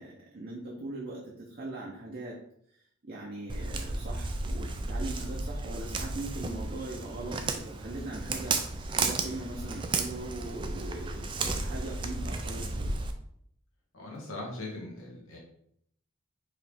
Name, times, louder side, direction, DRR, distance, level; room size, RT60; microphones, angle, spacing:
voice 1, 0.0-2.3 3.0-12.9, right 2 dB, 45° right, -3 dB, 0.7 m, -40 dB
Walk footsteps, 3.5-13.1, right 3 dB, 25° right, 0.3 m, -33 dB
voice 2, 13.9-15.4, left 2 dB, 85° left, -2 dB, 1.6 m, -40 dB
4.7 x 3.2 x 3.5 m, 0.69 s
head